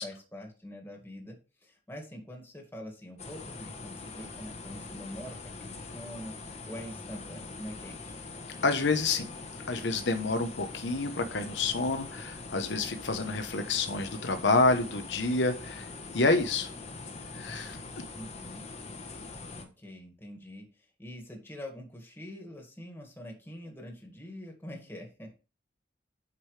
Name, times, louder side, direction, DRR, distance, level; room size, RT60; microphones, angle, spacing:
voice 1, 0.0-6.3 6.7-8.2 18.1-18.7 19.5-25.4, left 1 dB, 10° left, 1 dB, 1.9 m, -45 dB
sound 1, 3.2-19.6, left 3 dB, 35° left, 1.1 m, -43 dB
voice 2, 8.6-9.3 9.7-16.7 17.4-17.8, left 3 dB, 80° left, 7 dB, 1.0 m, -28 dB
8.6 x 5.4 x 3.3 m, 0.33 s
head